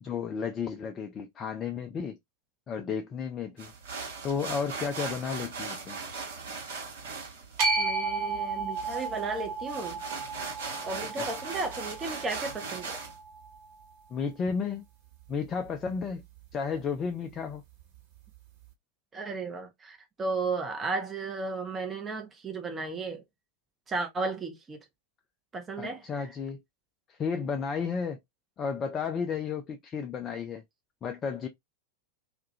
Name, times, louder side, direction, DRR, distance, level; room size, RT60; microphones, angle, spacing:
voice 1, 0.0-2.2 2.7-3.7 4.2-6.0 11.2-11.3 14.1-14.8 15.3-16.2 16.5-17.6 25.8-26.6 27.1-28.2 28.6-30.6 31.0-31.5, left 6 dB, 25° left, 0.3 m, -33 dB
sound 1, 3.6-13.2, right 4 dB, 60° right, 0.9 m, -39 dB
sound 2, 7.6-13.8, right 3 dB, 45° right, 1.2 m, -33 dB
voice 2, 7.8-10.0 10.8-13.0 19.1-23.2 23.9-24.8 25.5-26.3, right 3 dB, 20° right, 0.6 m, -34 dB
2.3 x 2.1 x 2.5 m
figure-of-eight pair, 90°, 0 cm